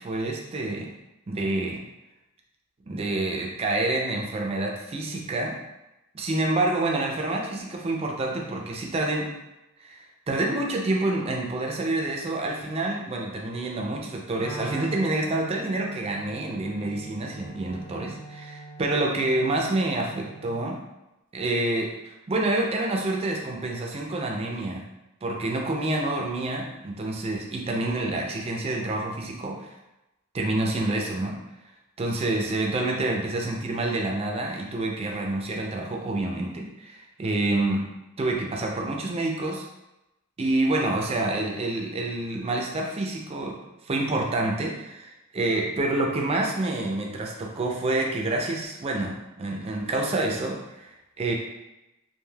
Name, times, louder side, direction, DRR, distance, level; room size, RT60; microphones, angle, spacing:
voice 1, 0.0-0.9 1.3-1.8 2.9-5.6 6.1-9.3 9.8-20.8 21.3-24.9 25.2-29.8 30.3-31.4 32.0-37.9 38.2-39.6 40.4-43.6 43.8-51.3, right 2 dB, 25° right, 0 dB, 0.4 m, -28 dB
Wind instrument woodwind instrument, 14.4-20.7, right 2 dB, 30° left, 0.6 m, -43 dB
3.2 x 2.4 x 2.3 m, 0.95 s
head